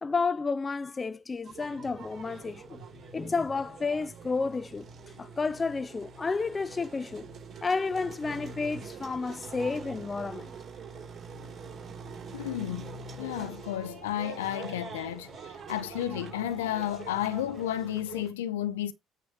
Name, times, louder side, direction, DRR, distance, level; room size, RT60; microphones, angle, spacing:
voice 1, 0.0-2.8 3.1-4.9 5.2-7.3 7.6-10.5, left 4 dB, 25° left, 0.4 m, -31 dB
sound 1, 1.4-18.3, right 5 dB, 40° right, 3.5 m, -44 dB
voice 2, 12.3-15.3 15.7-18.9, left 12 dB, 75° left, 0.6 m, -32 dB
9.1 x 3.2 x 5.9 m
figure-of-eight pair, 55°, 0 cm